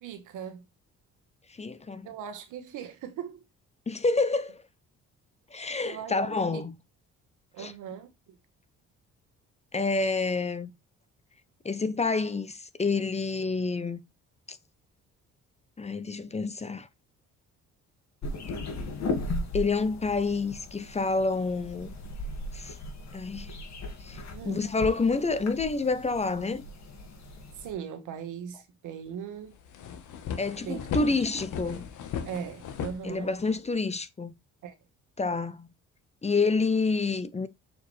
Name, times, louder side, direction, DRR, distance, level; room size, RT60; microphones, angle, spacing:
voice 1, 0.0-0.6 2.0-3.4 5.8-6.6 7.5-8.4 24.3-24.6 27.6-29.6 30.6-31.2 32.2-33.3 34.6-34.8, right 8 dB, 85° right, 1.4 m, -39 dB
voice 2, 1.5-2.1 3.9-4.6 5.5-6.7 7.6-7.7 9.7-10.7 11.6-14.0 14.5-14.6 15.8-16.9 19.5-21.9 22.5-22.8 23.1-23.6 24.0-26.6 30.4-31.8 33.0-34.3 35.2-35.7 36.2-37.5, left 3 dB, 20° left, 0.7 m, -28 dB
sound 1, 18.2-27.7, left 2 dB, 65° left, 2.1 m, -37 dB
sound 2, 29.1-29.2 29.5-33.7, left 7 dB, 80° left, 1.2 m, -37 dB
6.4 x 4.8 x 3.2 m
cardioid pair, 90°, 30 cm